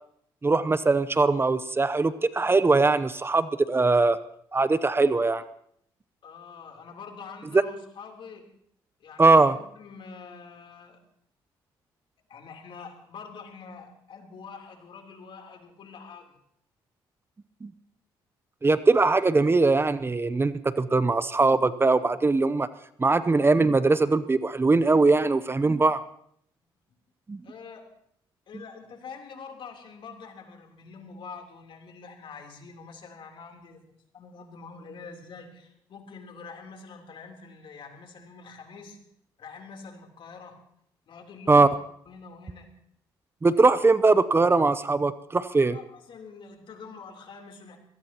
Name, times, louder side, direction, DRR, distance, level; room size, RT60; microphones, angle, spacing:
voice 1, 0.4-4.2 4.5-5.4 7.5-7.6 9.2-9.6 17.6-17.7 18.6-22.7 23.0-26.0 27.3-27.4 41.5-41.7 43.4-45.8, right 3 dB, 25° right, 14 dB, 0.7 m, -21 dB
voice 2, 6.2-8.4 9.0-11.0 12.3-16.3 27.4-27.9 28.5-33.8 34.1-39.0 39.4-40.6 41.1-41.8 42.1-42.7 45.6-47.8, left 5 dB, 60° left, 2 dB, 3.5 m, -45 dB
24.0 x 17.5 x 3.0 m, 0.68 s
supercardioid pair, 65°, 10 cm